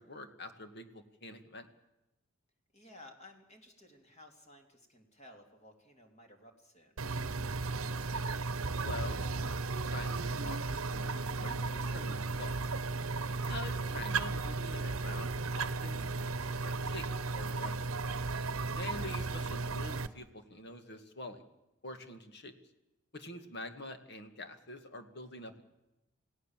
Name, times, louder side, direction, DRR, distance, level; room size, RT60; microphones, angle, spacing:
voice 1, 0.0-1.7 8.8-9.3 9.8-12.5 13.3-16.3 16.6-17.1 17.3-18.0 18.7-21.5 21.8-22.5 23.1-25.6, left 2 dB, 55° left, 7 dB, 2.0 m, -46 dB
voice 2, 2.7-7.0, left 1 dB, 35° left, 3 dB, 3.3 m, -56 dB
sound 1, 7.0-20.1, right 3 dB, 85° right, 0.9 m, -35 dB
28.5 x 17.5 x 7.5 m, 0.96 s
head